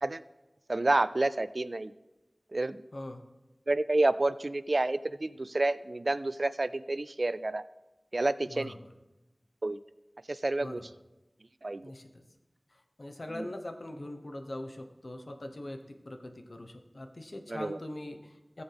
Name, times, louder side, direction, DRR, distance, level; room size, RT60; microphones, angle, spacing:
voice 1, 0.7-1.9 2.5-2.8 3.7-7.6 8.1-8.7 9.6-9.8 10.3-10.8 11.6-11.9 13.3-13.5 17.5-17.8, right 2 dB, 65° right, 16 dB, 0.3 m, -29 dB
voice 2, 2.9-3.2 8.4-8.8 10.6-10.8 11.8-12.2 12.7-18.6, left 1 dB, 70° left, 5 dB, 1.0 m, -42 dB
18.0 x 7.0 x 3.5 m, 1.0 s
wide cardioid pair, 40°, 0 cm